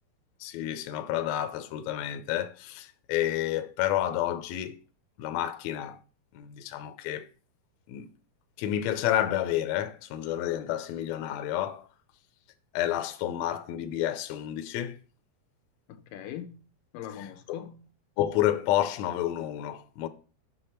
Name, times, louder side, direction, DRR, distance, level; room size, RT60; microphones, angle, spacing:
voice 1, 0.4-4.8 5.2-6.0 6.3-7.3 7.9-8.1 8.6-11.9 12.7-15.0 18.2-20.1, left 12 dB, 75° left, 1.7 m, -30 dB
voice 2, 15.9-16.6 16.9-17.8, left 10 dB, 90° left, 2.5 m, -41 dB
6.9 x 6.2 x 4.4 m
omnidirectional pair, 3.8 m